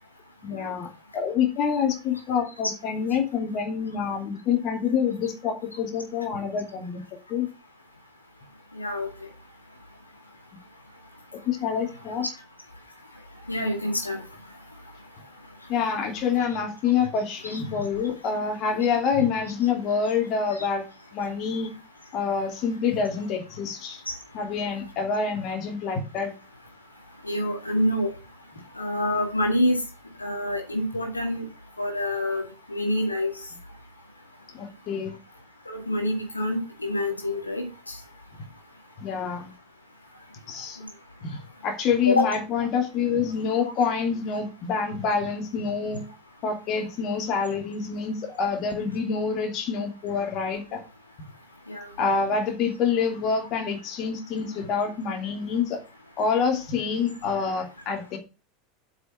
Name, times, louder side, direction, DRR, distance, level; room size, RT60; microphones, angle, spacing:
voice 1, 0.4-7.0 7.3-7.5 11.5-12.3 15.7-20.9 21.1-21.7 22.1-24.0 24.3-26.3 34.5-35.2 39.0-39.5 40.5-40.8 41.2-46.0 46.4-50.8 52.0-55.8 56.2-58.2, left 6 dB, 40° left, 3 dB, 2.8 m, -27 dB
voice 2, 8.7-9.1 13.5-14.2 17.4-17.6 20.6-20.7 24.1-24.2 27.2-28.1 28.8-29.8 30.2-31.4 31.8-32.4 32.7-33.3 35.7-38.0 40.8-40.9 42.1-42.3 51.7-51.9, left 1 dB, 85° left, 1 dB, 2.3 m, -26 dB
8.2 x 5.8 x 6.9 m, 0.30 s
figure-of-eight pair, 80°, 0 cm